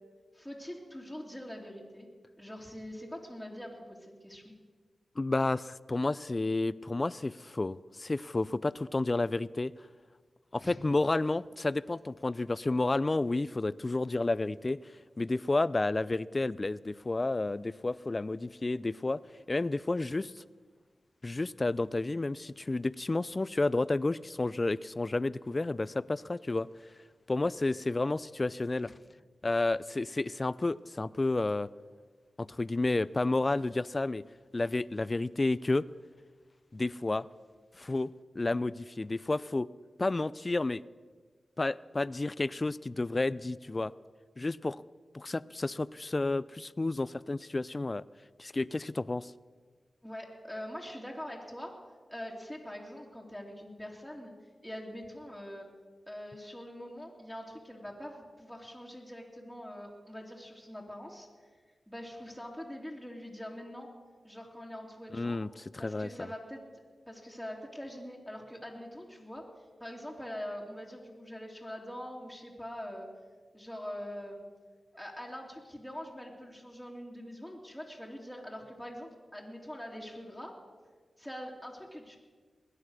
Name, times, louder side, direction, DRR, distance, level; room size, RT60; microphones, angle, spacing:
voice 1, 0.3-2.1 2.4-4.4 10.6-10.8 28.8-28.9 50.0-51.7 52.1-54.3 54.6-55.7 56.1-61.3 61.9-63.9 64.2-65.4 65.8-66.6 67.1-69.5 69.8-73.1 73.5-74.4 74.9-80.5 81.2-82.2, equal, ahead, -3 dB, 2.9 m, -43 dB
voice 2, 5.2-9.7 10.5-14.8 15.2-19.2 19.5-20.4 21.2-26.7 27.3-28.9 29.4-31.7 32.4-34.3 34.5-35.8 36.7-37.2 37.8-38.1 38.4-39.7 40.0-40.8 41.6-43.9 44.4-44.8 45.1-48.0 48.4-49.3 65.1-66.1, left 2 dB, 35° left, 19 dB, 0.4 m, -31 dB
20.5 x 9.8 x 6.4 m, 1.5 s
cardioid pair, 55°, 0 cm